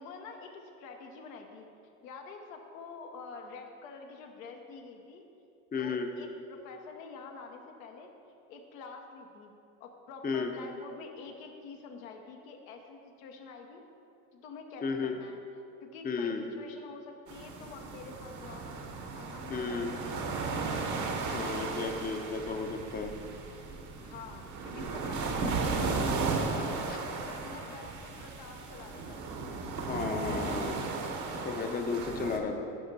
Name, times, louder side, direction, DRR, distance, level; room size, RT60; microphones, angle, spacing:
voice 1, 0.0-1.7 2.0-5.3 5.8-8.1 8.5-9.5 9.8-13.8 14.3-15.4 15.8-18.7 19.1-20.8 24.0-26.7 27.2-29.3 31.6-32.6, left 4 dB, 80° left, 3 dB, 0.8 m, -47 dB
voice 2, 5.7-6.1 10.2-10.5 14.8-15.1 16.0-16.4 19.5-19.9 21.3-23.1 29.8-30.9 31.4-32.6, left 4 dB, 20° left, 5 dB, 0.6 m, -33 dB
sound 1, 17.3-32.4, right 4 dB, 45° right, 0.9 m, -35 dB
10.5 x 5.0 x 2.7 m, 2.6 s
hypercardioid pair, 70°, 40 cm